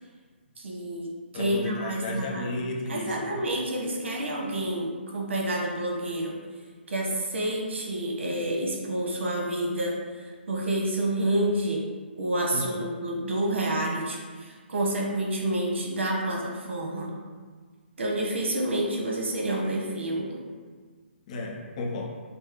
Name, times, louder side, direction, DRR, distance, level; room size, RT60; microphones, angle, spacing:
voice 1, 0.6-1.1 1.3-2.5 2.9-6.3 6.9-11.8 12.2-17.1 18.0-20.4, right 1 dB, 80° right, -1 dB, 1.0 m, -29 dB
voice 2, 1.3-3.4 12.5-12.9 21.3-22.1, left 2 dB, 35° left, 0 dB, 0.6 m, -33 dB
5.3 x 2.0 x 3.6 m, 1.5 s
hypercardioid pair, 160°, 6 cm